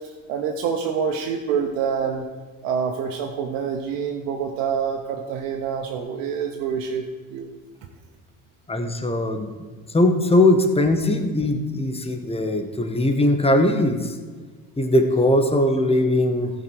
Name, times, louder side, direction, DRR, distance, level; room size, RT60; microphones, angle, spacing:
voice 1, 0.3-2.3 2.6-7.0 7.3-7.5, right 7 dB, 85° right, 2 dB, 0.9 m, -26 dB
voice 2, 8.7-9.5 9.9-14.1 14.8-16.5, left 1 dB, 15° left, 6 dB, 1.3 m, -20 dB
14.5 x 5.1 x 4.7 m, 1.5 s
supercardioid pair, 65°, 40 cm